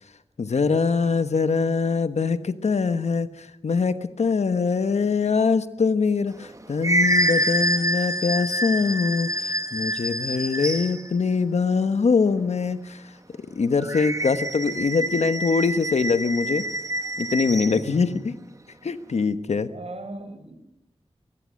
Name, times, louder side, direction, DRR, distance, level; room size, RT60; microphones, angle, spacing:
voice 1, 0.4-13.0 13.4-16.7 17.2-18.3 18.8-19.7, left 5 dB, 85° left, 11 dB, 1.2 m, -23 dB
sound 1, 6.3-11.1 13.8-17.8, right 1 dB, 30° right, 1.6 m, -26 dB
voice 2, 17.6-18.3 19.7-20.5, right 2 dB, 70° right, 7 dB, 4.7 m, -37 dB
22.5 x 21.5 x 6.4 m, 0.81 s
wide cardioid pair, 90°, 11 cm